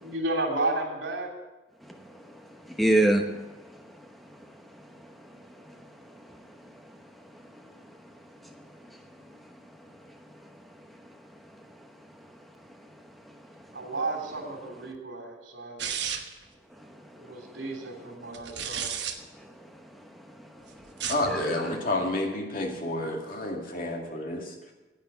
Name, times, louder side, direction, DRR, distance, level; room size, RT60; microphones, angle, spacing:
voice 1, 0.0-1.3 13.7-15.9 17.1-18.9, right 2 dB, 90° right, 3.1 m, -32 dB
voice 2, 1.8-13.8 16.8-17.6 19.3-21.7, right 1 dB, ahead, 0.9 m, -34 dB
sound 1, 15.8-16.4 18.3-19.1 20.9-21.3, right 8 dB, 65° right, 1.2 m, -32 dB
voice 3, 21.1-24.7, left 1 dB, 50° left, 2.2 m, -30 dB
10.5 x 9.3 x 8.2 m
head